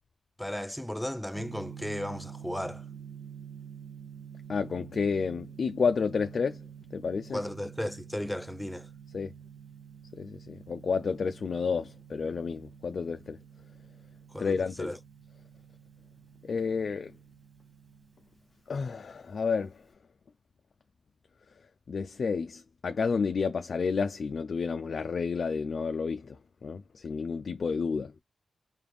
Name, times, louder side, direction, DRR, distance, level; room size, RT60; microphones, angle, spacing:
voice 1, 0.4-2.8 7.3-8.9 14.3-15.0, left 1 dB, 5° left, 0.5 m, -35 dB
Gong, 1.3-19.9, right 7 dB, 70° right, 2.4 m, -48 dB
voice 2, 4.5-6.6 6.9-7.4 9.1-9.3 10.1-13.4 14.4-14.9 16.4-17.1 18.7-19.9 21.9-28.2, left 5 dB, 70° left, 0.3 m, -30 dB
5.0 x 2.3 x 3.4 m
cardioid pair, 50°, 0 cm